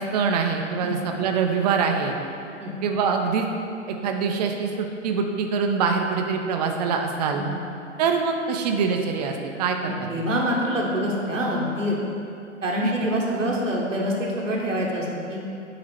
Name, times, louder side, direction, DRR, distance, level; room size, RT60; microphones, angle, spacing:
voice 1, 0.0-2.2 2.8-3.5 3.9-7.4 8.0-10.2 12.8-13.1, right 5 dB, 35° right, 3 dB, 0.5 m, -24 dB
voice 2, 9.8-12.0 12.6-15.4, equal, 85° right, -3 dB, 1.0 m, -26 dB
7.8 x 2.9 x 4.3 m, 2.6 s
figure-of-eight pair, 110°, 38 cm